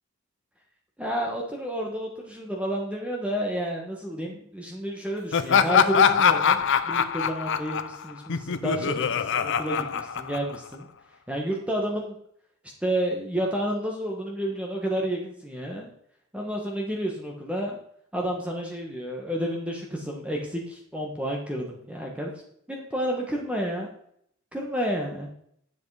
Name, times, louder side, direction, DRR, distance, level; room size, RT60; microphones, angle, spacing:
voice 1, 1.0-10.9 11.3-12.2 12.8-15.9 16.3-17.8 18.1-22.3 22.7-23.9 24.5-25.3, equal, 5° right, 0 dB, 1.4 m, -30 dB
Laughter, 5.3-10.8, left 7 dB, 55° left, 0.6 m, -23 dB
10.5 x 7.4 x 4.9 m, 0.68 s
head